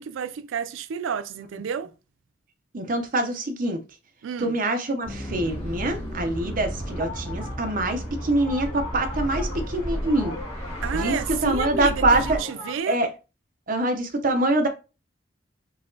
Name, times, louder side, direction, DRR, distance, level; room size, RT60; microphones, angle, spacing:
voice 1, 0.0-1.9 4.2-4.6 10.8-13.0, right 7 dB, 80° right, 0.3 m, -30 dB
voice 2, 2.7-3.8 4.4-10.4 10.9-12.4 12.9-13.1 13.7-14.7, right 2 dB, 45° right, 0.6 m, -24 dB
sound 1, 5.0-12.4, equal, 30° left, 1.6 m, -33 dB
sound 2, 6.8-12.8, left 3 dB, 60° left, 1.8 m, -40 dB
3.9 x 2.8 x 2.7 m
head